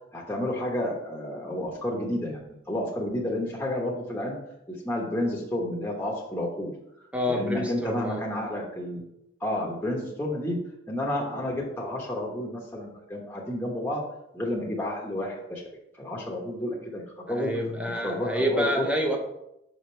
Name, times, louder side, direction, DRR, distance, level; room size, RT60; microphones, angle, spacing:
voice 1, 0.1-4.4 4.7-6.7 7.0-9.0 9.4-10.6 10.9-14.0 14.3-15.6 16.0-17.5 18.0-18.8, left 1 dB, 10° left, -3 dB, 1.1 m, -31 dB
voice 2, 7.1-8.2 17.3-19.2, equal, 5° right, 1 dB, 0.9 m, -28 dB
6.3 x 5.1 x 4.5 m, 0.82 s
head